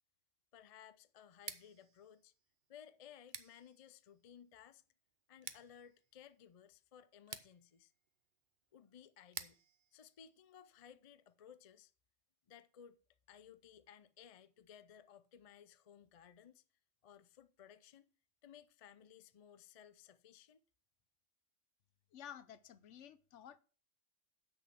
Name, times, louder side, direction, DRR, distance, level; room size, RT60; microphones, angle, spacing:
voice 1, 0.5-2.3 2.7-4.8 5.3-7.9 8.7-9.6 9.9-11.9 12.5-13.0 13.3-16.6 17.0-18.1 18.4-20.6, left 9 dB, 50° left, 0.4 m, -59 dB
Scissors, 1.3-11.1, right 6 dB, 45° right, 0.8 m, -55 dB
voice 2, 22.1-23.6, left 9 dB, 75° left, 1.0 m, -53 dB
8.0 x 6.3 x 7.4 m
omnidirectional pair, 1.3 m